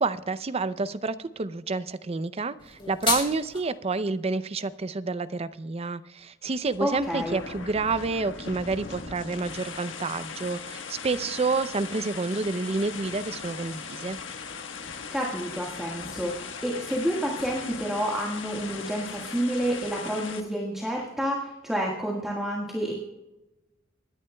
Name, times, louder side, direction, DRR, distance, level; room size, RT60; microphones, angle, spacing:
voice 1, 0.0-14.2, right 3 dB, 30° right, 14 dB, 0.5 m, -29 dB
sound 1, 2.6-3.6, left 4 dB, 25° left, 3.9 m, -30 dB
sound 2, 6.5-20.4, left 5 dB, 75° left, 1.3 m, -39 dB
voice 2, 6.8-7.4 15.1-22.9, equal, ahead, -3 dB, 1.6 m, -29 dB
25.0 x 10.5 x 2.3 m, 1.0 s
head